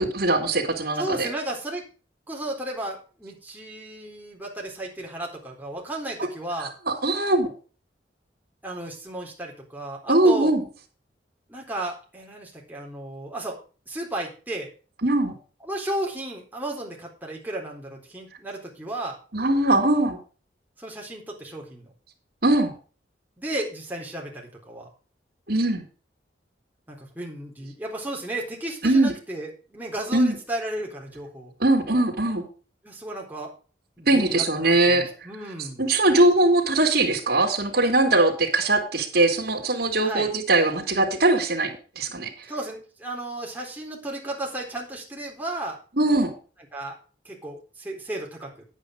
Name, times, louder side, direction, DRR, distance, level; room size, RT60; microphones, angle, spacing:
voice 1, 0.0-1.3 6.6-7.5 10.1-10.6 15.0-15.3 19.3-20.2 22.4-22.7 25.5-25.8 28.8-29.1 30.1-30.4 31.6-32.4 34.0-35.1 35.8-42.3 46.0-46.3, right 2 dB, 55° right, -2 dB, 3.0 m, -21 dB
voice 2, 1.0-1.9 2.3-6.7 8.6-10.5 11.5-13.6 13.9-14.7 15.6-19.2 20.8-21.9 23.4-24.9 26.9-31.5 32.8-33.5 34.0-35.8 40.0-40.3 42.5-45.8 46.7-47.0 47.2-48.6, right 1 dB, 10° right, -1 dB, 3.9 m, -34 dB
9.9 x 8.9 x 5.1 m, 0.36 s
head